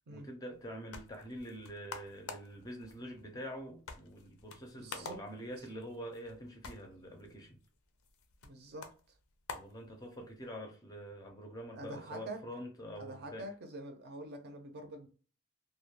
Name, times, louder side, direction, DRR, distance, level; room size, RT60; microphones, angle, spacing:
voice 1, 0.1-7.6 9.5-13.5, equal, 20° left, 0.4 m, -46 dB
sound 1, 0.5-10.5, left 5 dB, 80° left, 0.5 m, -51 dB
voice 2, 4.8-5.2 8.4-8.9 11.7-12.4 13.0-15.1, right 1 dB, 50° right, 0.5 m, -45 dB
2.2 x 2.1 x 2.8 m
head